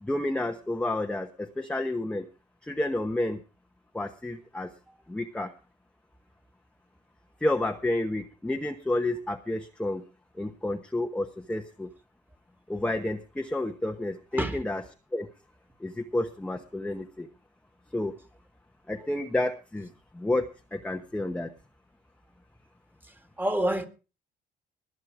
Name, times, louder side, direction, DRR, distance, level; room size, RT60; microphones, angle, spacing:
voice 1, 0.0-2.3 2.6-3.4 3.9-4.7 5.1-5.5 7.4-10.0 10.3-11.9 12.7-14.8 15.1-15.3 15.8-17.3 17.9-18.1 18.9-21.5, left 1 dB, 5° left, 1.0 m, -30 dB
voice 2, 23.1-23.9, right 1 dB, 10° right, 2.1 m, -28 dB
20.5 x 7.7 x 4.8 m
cardioid pair, 110°, 17 cm